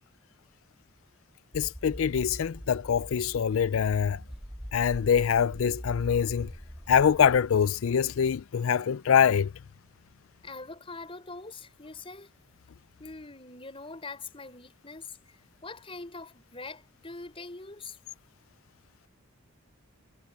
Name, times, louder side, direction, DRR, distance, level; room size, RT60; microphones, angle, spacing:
voice 1, 1.5-4.2 4.7-6.5 6.9-9.5, left 7 dB, 70° left, 0.4 m, -24 dB
sound 1, 1.5-7.4, equal, ahead, 2.4 m, -42 dB
voice 2, 10.4-12.3 13.0-15.1 15.6-18.0, left 3 dB, 25° left, 5.6 m, -43 dB
head